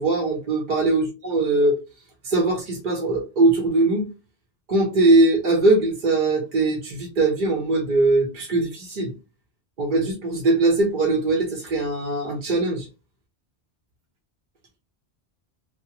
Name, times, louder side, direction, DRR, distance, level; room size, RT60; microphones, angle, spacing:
voice 1, 0.0-1.8 2.2-4.1 4.7-9.1 9.8-12.9, right 2 dB, 55° right, 2 dB, 0.6 m, -21 dB
2.8 x 2.0 x 2.7 m, 0.31 s
omnidirectional pair, 1.1 m